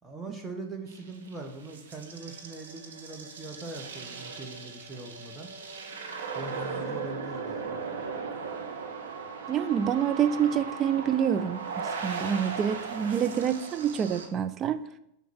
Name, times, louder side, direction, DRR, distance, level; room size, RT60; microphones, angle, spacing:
voice 1, 0.0-5.5 6.3-7.8, right 2 dB, 5° right, 0 dB, 1.7 m, -41 dB
sound 1, 0.9-14.3, right 5 dB, 65° right, 1.3 m, -38 dB
voice 2, 9.5-14.8, right 8 dB, 30° right, 9 dB, 0.5 m, -27 dB
6.9 x 6.0 x 6.4 m, 0.78 s
figure-of-eight pair, 90°, 0 cm